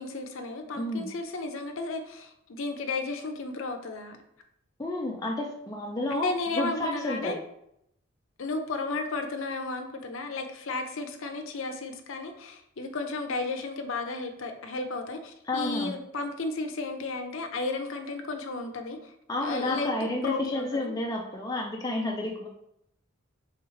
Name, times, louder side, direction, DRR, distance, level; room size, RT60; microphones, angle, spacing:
voice 1, 0.0-4.2 6.1-7.4 8.4-19.1 19.4-20.0 20.2-21.0, left 3 dB, 65° left, 5 dB, 0.6 m, -33 dB
voice 2, 0.8-1.1 4.8-7.4 15.5-16.0 19.3-22.5, left 2 dB, 15° left, 0 dB, 0.4 m, -31 dB
3.5 x 3.1 x 4.8 m, 0.76 s
head